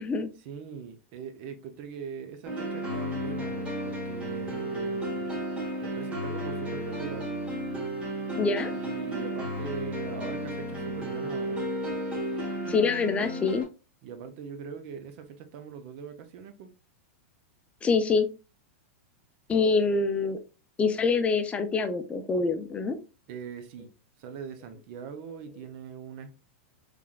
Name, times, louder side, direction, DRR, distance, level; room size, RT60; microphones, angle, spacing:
voice 1, 0.4-5.3 5.8-7.3 8.7-11.7 14.0-16.7 23.3-23.9 24.2-26.3, right 7 dB, 50° right, 0.8 m, -41 dB
sound 1, 2.4-13.6, equal, 15° right, 1.6 m, -33 dB
voice 2, 8.4-8.7 12.7-13.6 17.8-18.3 19.5-20.4 20.8-23.0, left 4 dB, 15° left, 0.5 m, -25 dB
3.6 x 3.3 x 2.4 m
hypercardioid pair, 130°, 7 cm